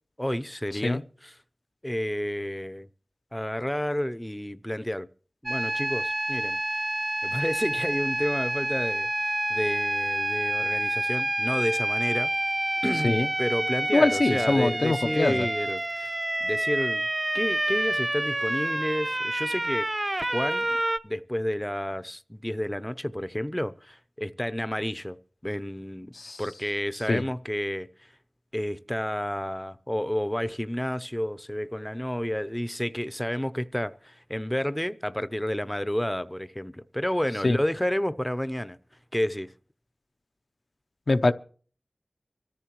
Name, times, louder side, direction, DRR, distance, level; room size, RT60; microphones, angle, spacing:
voice 1, 0.2-1.3 1.8-2.9 3.3-5.1 5.4-6.6 7.2-12.5 12.8-16.1 16.4-17.1 17.3-19.9 20.3-20.8 21.0-25.2 25.4-26.1 26.4-28.1 28.5-38.8 39.1-39.5, equal, 10° left, 0.6 m, -30 dB
sound 1, 5.5-21.0, right 1 dB, 35° right, 0.9 m, -28 dB
voice 2, 13.9-15.5 26.1-26.4 27.1-27.2 37.4-37.6 41.1-41.3, left 2 dB, 75° left, 0.7 m, -23 dB
25.0 x 14.0 x 3.0 m
wide cardioid pair, 55°, 0 cm